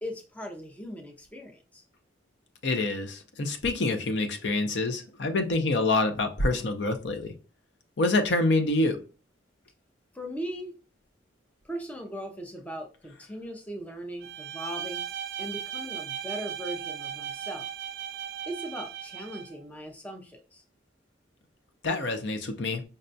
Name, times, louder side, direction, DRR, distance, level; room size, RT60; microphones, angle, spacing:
voice 1, 0.0-1.8 10.1-10.8 11.6-15.0 15.4-17.7 18.5-20.6, equal, 10° left, 3 dB, 0.5 m, -39 dB
voice 2, 2.6-7.3 8.0-9.0 21.8-22.8, left 2 dB, 70° left, 7 dB, 0.6 m, -26 dB
Bowed string instrument, 14.2-19.6, right 9 dB, 65° right, 0.4 m, -37 dB
5.2 x 2.2 x 2.6 m, 0.33 s
head